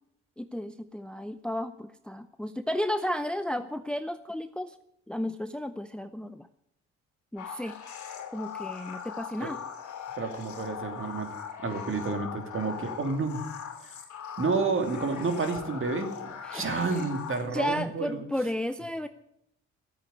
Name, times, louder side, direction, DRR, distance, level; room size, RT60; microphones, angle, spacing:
voice 1, 0.4-4.8 5.1-6.5 7.3-7.8 8.3-9.6 16.4-16.6 17.0-17.1 17.5-19.1, left 1 dB, 5° left, 11 dB, 0.6 m, -33 dB
sound 1, 7.4-17.7, left 8 dB, 70° left, 2.9 m, -40 dB
voice 2, 10.2-11.3 11.6-13.4 13.8-13.9 14.4-16.1 16.5-18.2, right 4 dB, 45° right, 6 dB, 2.7 m, -30 dB
13.0 x 8.3 x 9.5 m, 0.77 s
cardioid pair, 90°, 30 cm